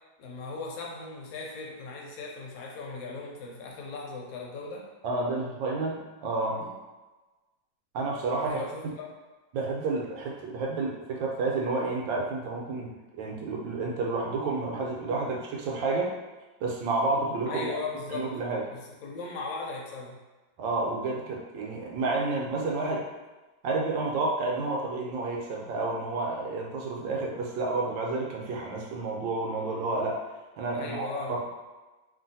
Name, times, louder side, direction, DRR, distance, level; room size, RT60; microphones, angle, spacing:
voice 1, 0.2-4.9 6.5-6.7 8.4-9.1 17.5-18.3 18.7-20.2 30.7-31.4, left 3 dB, 80° left, -1 dB, 1.3 m, -38 dB
voice 2, 5.0-6.6 7.9-8.6 9.5-16.1 16.6-17.7 18.1-18.6 20.6-23.0 23.6-30.2 30.6-31.5, right 3 dB, 75° right, -2 dB, 1.2 m, -30 dB
3.0 x 2.5 x 2.6 m, 1.2 s
omnidirectional pair, 2.1 m